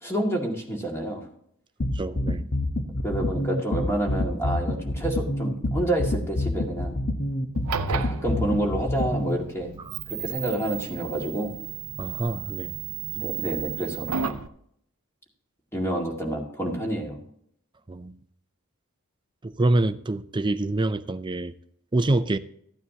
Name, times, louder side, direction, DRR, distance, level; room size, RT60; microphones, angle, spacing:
voice 1, 0.0-1.3 3.0-6.9 7.9-9.7 10.1-11.5 13.1-14.4 15.7-17.2, right 1 dB, 10° left, 2.1 m, -28 dB
sound 1, 1.8-9.4, left 1 dB, 50° left, 1.1 m, -27 dB
voice 2, 1.9-2.4 9.8-10.0 12.0-12.8 17.9-18.2 19.4-21.5 21.9-22.4, right 2 dB, 20° right, 0.5 m, -26 dB
sound 2, 7.5-14.5, right 7 dB, 85° right, 0.7 m, -34 dB
14.0 x 9.4 x 2.9 m
head